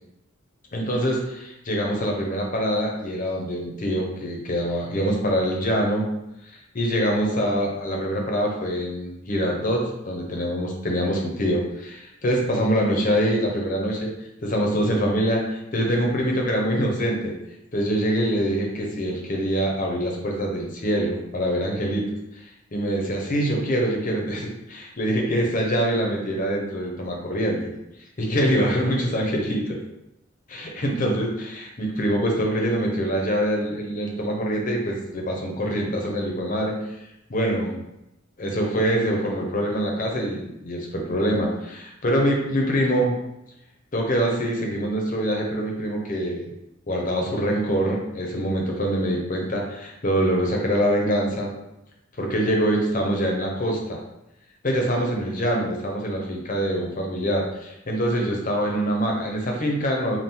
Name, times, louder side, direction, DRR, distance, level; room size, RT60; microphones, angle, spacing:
voice 1, 0.7-6.1 6.5-14.1 14.4-17.3 17.7-22.1 22.3-22.4 22.7-27.6 28.2-29.8 30.5-37.0 37.3-37.8 38.4-43.2 43.9-46.5 46.9-51.5 52.2-54.0 54.6-60.2, equal, 40° left, 0 dB, 0.8 m, -24 dB
3.7 x 2.4 x 4.3 m, 0.87 s
head